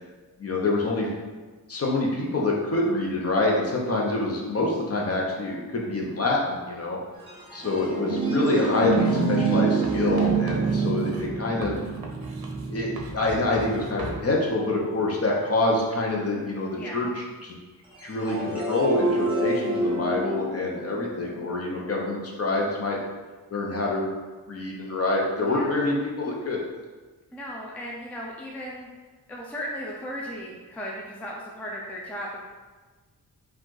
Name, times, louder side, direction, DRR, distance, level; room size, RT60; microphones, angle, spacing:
voice 1, 0.4-1.1 1.7-7.0 7.5-11.8 12.7-17.6 18.0-23.0 23.5-24.1 24.5-26.6, left 2 dB, 40° left, -2 dB, 0.7 m, -26 dB
sound 1, 7.2-14.8 18.0-22.1, right 3 dB, 15° right, 1.2 m, -27 dB
voice 2, 7.6-8.0 16.8-17.1 25.4-25.7 27.3-28.9 29.3-32.4, equal, 5° left, -3 dB, 0.4 m, -36 dB
Writing, 8.9-9.3 9.8-14.2, right 3 dB, 75° right, 0.7 m, -40 dB
5.0 x 2.5 x 3.8 m, 1.3 s
wide cardioid pair, 175°, 37 cm